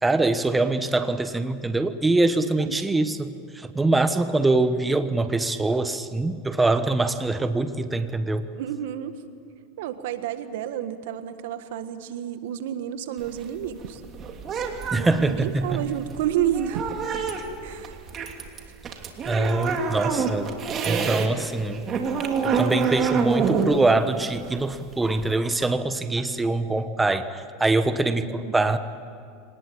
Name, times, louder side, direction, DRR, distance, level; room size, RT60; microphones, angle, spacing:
voice 1, 0.0-8.5 14.9-15.8 19.3-20.6 20.8-21.9 22.4-28.8, right 2 dB, 10° right, 10 dB, 1.2 m, -24 dB
voice 2, 2.7-3.0 8.5-9.2 9.8-14.0 14.9-16.9 17.6-18.1 28.2-28.6, right 10 dB, 75° right, 10 dB, 1.5 m, -30 dB
sound 1, 13.2-21.3 21.6-25.3, right 5 dB, 35° right, 2.8 m, -27 dB
25.0 x 19.5 x 8.7 m, 2.4 s
supercardioid pair, 115°, 0 cm